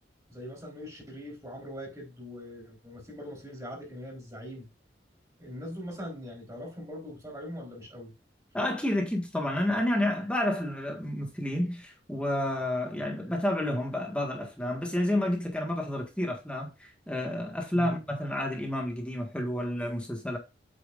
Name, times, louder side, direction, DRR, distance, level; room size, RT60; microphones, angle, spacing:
voice 1, 0.3-4.7 5.4-8.1 17.7-18.0, equal, 20° right, 4.0 m, -41 dB
voice 2, 8.5-20.4, left 1 dB, 5° left, 1.6 m, -30 dB
8.6 x 6.0 x 2.5 m
head